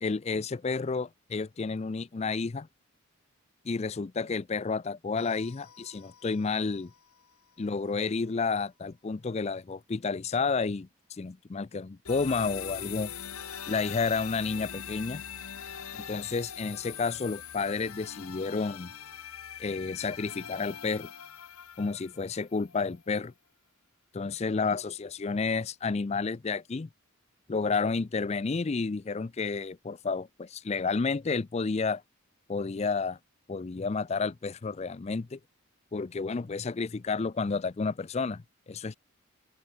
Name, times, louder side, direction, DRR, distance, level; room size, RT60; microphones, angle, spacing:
voice 1, 0.0-2.7 3.6-6.9 7.6-13.1 13.7-15.2 15.9-18.9 19.6-21.1 21.8-23.3 24.1-26.9 27.5-32.0 32.5-33.2 33.5-35.4 35.9-39.0, left 4 dB, 30° left, 0.4 m, -31 dB
sound 1, 5.2-7.0 12.1-23.0, left 8 dB, 85° left, 1.3 m, -42 dB
head